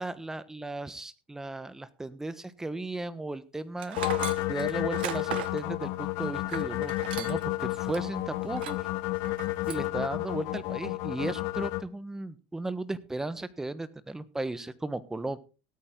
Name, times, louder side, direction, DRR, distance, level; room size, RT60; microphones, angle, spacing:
voice 1, 0.0-4.0 4.5-8.9 9.7-15.4, right 2 dB, 10° right, 15 dB, 1.3 m, -35 dB
Tools, 3.8-7.5 7.9-8.0 8.5-8.9 9.2-9.9, right 13 dB, 85° right, 1.0 m, -38 dB
sound 1, 4.0-11.8, left 18 dB, 65° left, 1.1 m, -31 dB
17.5 x 9.2 x 3.9 m, 0.33 s
supercardioid pair, 100°, 5 cm